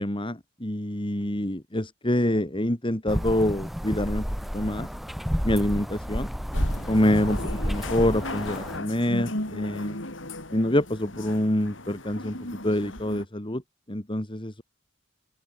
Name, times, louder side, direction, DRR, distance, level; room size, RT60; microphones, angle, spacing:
voice 1, 0.0-4.3 4.5-4.9 5.4-6.3 6.9-10.0 10.5-13.6 13.9-14.6, left 1 dB, 25° left, 2.8 m, -26 dB
sound 1, 3.1-8.8, equal, ahead, 5.2 m, -30 dB
sound 2, 6.5-13.3, left 1 dB, 70° left, 7.8 m, -36 dB
open air
head